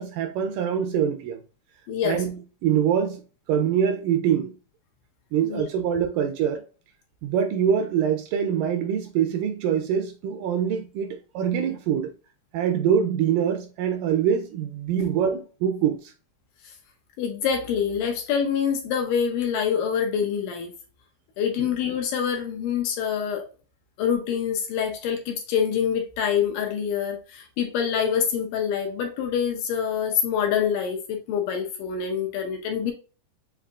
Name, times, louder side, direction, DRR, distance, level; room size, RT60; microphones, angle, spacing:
voice 1, 0.0-1.4 2.0-3.2 3.5-4.5 5.3-6.7 7.2-12.1 12.5-16.1 21.6-21.7, right 8 dB, 80° right, 2.0 m, -24 dB
voice 2, 1.9-2.2 5.4-5.7 16.6-16.7 17.2-20.7 21.4-23.4 24.0-32.9, left 7 dB, 80° left, 2.1 m, -26 dB
7.4 x 2.7 x 2.3 m
omnidirectional pair, 4.1 m